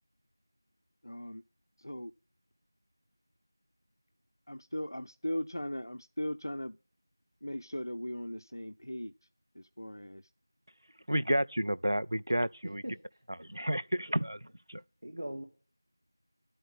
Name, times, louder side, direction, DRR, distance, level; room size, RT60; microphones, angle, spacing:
voice 1, 1.0-1.4 1.8-2.1 4.5-6.8 7.4-9.1 9.6-10.2, equal, 80° left, 0.5 m, -38 dB
voice 2, 11.1-12.8 13.4-14.4 14.7-14.8, equal, 80° right, 0.6 m, -30 dB
voice 3, 12.6-13.2 13.6-14.2 15.0-15.4, right 1 dB, 55° right, 2.1 m, -42 dB
11.5 x 9.3 x 6.0 m
figure-of-eight pair, 175°, 2 cm